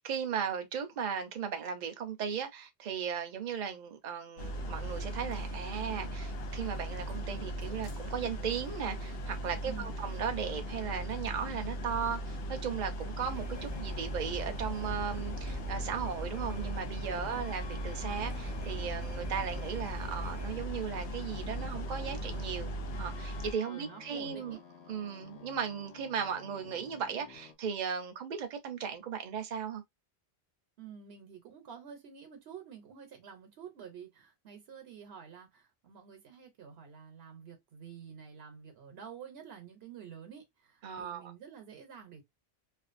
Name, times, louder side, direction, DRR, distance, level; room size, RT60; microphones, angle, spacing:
voice 1, 0.0-22.7 23.0-24.6 24.9-29.8 40.8-41.3, right 7 dB, 50° right, 0.7 m, -36 dB
sound 1, 4.4-23.5, right 1 dB, 70° left, 0.8 m, -38 dB
voice 2, 9.6-10.0 17.1-17.5 23.7-24.6 30.8-42.2, right 7 dB, 75° right, 0.9 m, -49 dB
sound 2, 13.2-20.5, left 1 dB, 15° right, 0.5 m, -46 dB
sound 3, 13.5-27.6, left 6 dB, 85° left, 1.0 m, -52 dB
2.4 x 2.3 x 2.5 m
omnidirectional pair, 1.1 m